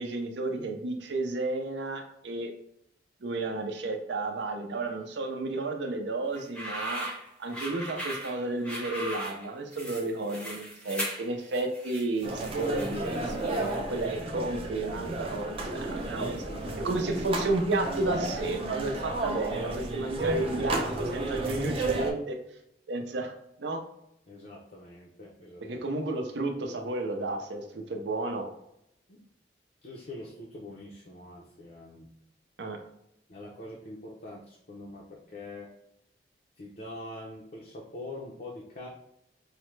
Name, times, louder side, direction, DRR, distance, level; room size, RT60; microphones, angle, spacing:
voice 1, 0.0-2.5 3.2-7.1 7.4-16.4 16.8-22.4 22.9-23.3 23.6-23.8 25.6-28.5 32.6-32.8, right 2 dB, 75° right, 4 dB, 0.6 m, -32 dB
sound 1, 6.3-13.9, right 1 dB, 5° left, 0.6 m, -39 dB
sound 2, 12.2-22.1, right 2 dB, 30° right, 0.5 m, -33 dB
voice 2, 16.2-17.0 24.3-25.7 29.1-29.2 29.8-32.1 33.3-35.7 36.6-38.9, left 1 dB, 50° left, -2 dB, 0.5 m, -44 dB
4.8 x 2.1 x 3.1 m, 0.78 s
head